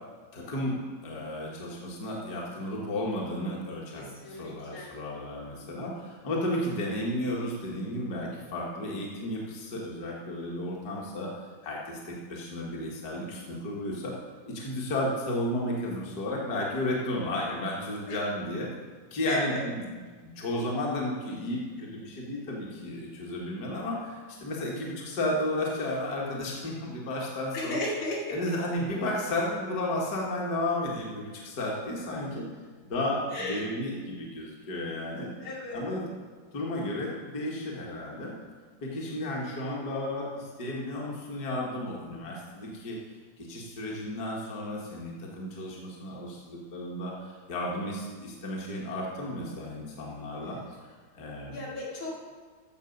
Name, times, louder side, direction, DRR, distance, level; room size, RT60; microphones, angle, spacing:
voice 1, 0.3-0.8 1.0-14.1 14.5-18.7 19.1-19.9 20.2-27.8 28.3-32.5 32.9-35.3 35.7-36.1 36.5-38.3 38.8-43.0 43.4-50.6 51.1-51.6, left 1 dB, 50° left, -3 dB, 2.0 m, -33 dB
voice 2, 4.0-5.0 18.1-18.2 19.2-19.6 27.5-28.4 33.3-33.7 35.4-35.9 51.5-52.2, left 1 dB, 80° left, -5 dB, 3.3 m, -34 dB
14.0 x 7.0 x 5.2 m, 1.5 s
omnidirectional pair, 2.3 m